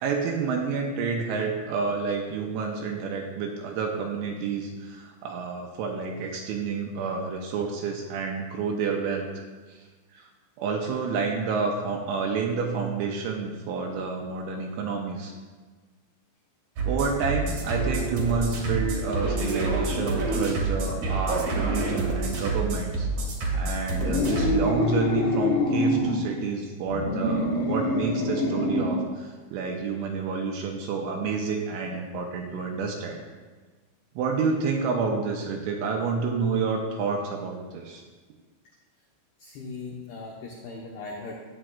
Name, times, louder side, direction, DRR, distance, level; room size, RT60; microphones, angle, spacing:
voice 1, 0.0-9.3 9.7-9.8 10.1-10.3 10.6-15.3 16.9-23.1 23.5-33.2 34.2-38.0, right 5 dB, 85° right, 1 dB, 2.9 m, -29 dB
sound 1, 16.8-24.6, right 2 dB, 60° right, 2.1 m, -27 dB
sound 2, 23.9-26.2 26.8-29.0, left 2 dB, 70° left, 2.8 m, -25 dB
voice 2, 39.4-41.4, left 3 dB, 85° left, -2 dB, 2.2 m, -39 dB
14.0 x 8.8 x 2.3 m, 1.4 s
omnidirectional pair, 6.0 m